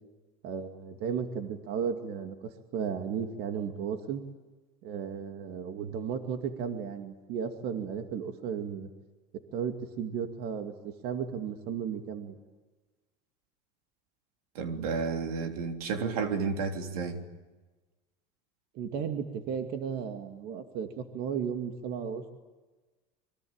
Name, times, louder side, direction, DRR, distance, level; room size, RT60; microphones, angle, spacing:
voice 1, 0.4-4.2 4.8-8.9 9.5-12.3 18.7-22.3, right 7 dB, 60° right, 6 dB, 2.4 m, -34 dB
voice 2, 14.6-17.2, right 5 dB, 90° right, 5 dB, 3.5 m, -31 dB
26.0 x 23.5 x 9.0 m, 1.2 s
supercardioid pair, 110°, 18 cm